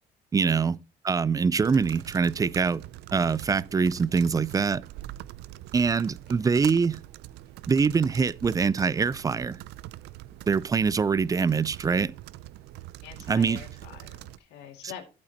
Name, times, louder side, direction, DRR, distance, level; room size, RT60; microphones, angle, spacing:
voice 1, 0.3-0.8 1.0-2.8 3.1-4.8 5.7-7.0 7.7-9.6 10.5-12.1 13.3-13.6, right 5 dB, 20° right, 0.4 m, -24 dB
sound 1, 1.6-14.4, right 15 dB, 80° right, 0.4 m, -43 dB
voice 2, 6.4-6.7 13.0-15.0, left 9 dB, 85° left, 2.2 m, -45 dB
11.5 x 8.5 x 2.8 m
cardioid pair, 110°, 17 cm